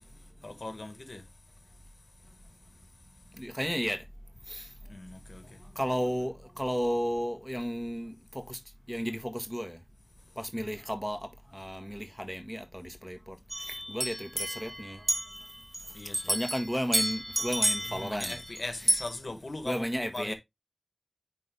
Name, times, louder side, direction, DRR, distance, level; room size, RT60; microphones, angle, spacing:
voice 1, 0.0-3.4 4.9-5.7 10.2-10.4 15.8-16.3 17.8-20.3, left 2 dB, 90° left, 1.1 m, -42 dB
voice 2, 3.4-4.0 4.5-4.7 5.7-8.6 8.9-9.8 10.4-11.2 11.5-13.4 13.7-15.0 16.2-18.4 19.6-20.3, equal, 5° right, 1.6 m, -33 dB
sound 1, 13.5-18.6 18.9-19.0, equal, 25° right, 2.2 m, -30 dB
9.7 x 3.8 x 3.4 m
wide cardioid pair, 50°, 0 cm